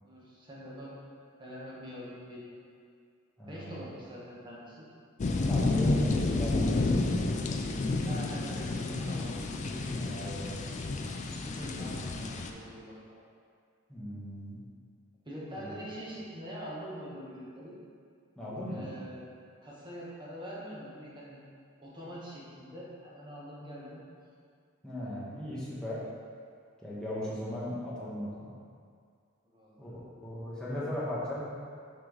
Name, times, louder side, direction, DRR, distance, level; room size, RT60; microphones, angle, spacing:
voice 1, 0.0-1.0 1.4-2.6 3.5-4.9 7.9-9.4 11.2-13.2 15.2-17.8 18.7-19.2 19.6-21.4 21.8-24.0 29.5-29.9, equal, 25° right, -6 dB, 1.2 m, -44 dB
voice 2, 3.4-3.8 5.5-7.1 9.9-10.6 13.9-14.6 15.6-15.7 18.4-18.9 24.8-26.0 26.8-28.5 29.8-29.9 30.2-31.5, left 1 dB, 5° left, -9 dB, 1.3 m, -37 dB
sound 1, 5.2-12.5, left 2 dB, 35° left, 0.4 m, -30 dB
6.0 x 5.1 x 3.1 m, 2.2 s
head